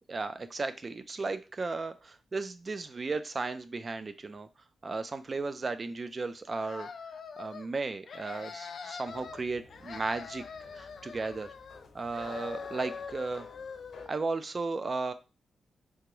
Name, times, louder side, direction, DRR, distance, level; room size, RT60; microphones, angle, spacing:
voice 1, 0.1-4.5 4.8-6.9 7.4-10.4 10.7-11.5 11.9-13.5 14.1-15.1, right 3 dB, 30° right, 11 dB, 0.3 m, -35 dB
sound 1, 6.5-7.7 8.0-9.4 9.7-11.9 12.1-14.1, left 5 dB, 55° left, 0.3 m, -43 dB
sound 2, 9.1-14.1, left 3 dB, 90° left, 0.8 m, -54 dB
3.4 x 2.9 x 3.0 m, 0.30 s
wide cardioid pair, 165°, 0 cm